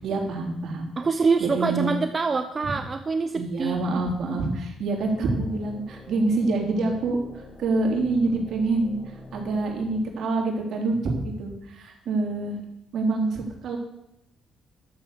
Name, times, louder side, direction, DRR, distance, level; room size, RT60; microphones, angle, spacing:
voice 1, 0.0-0.9 1.4-1.9 3.3-12.6 12.9-13.8, right 3 dB, 65° right, 0 dB, 3.4 m, -26 dB
voice 2, 1.0-4.0, right 4 dB, 35° right, 8 dB, 0.7 m, -25 dB
sound 1, 5.0-10.1, left 2 dB, 20° left, 1.6 m, -45 dB
12.0 x 7.6 x 7.2 m, 0.85 s
cardioid pair, 90°, 0 cm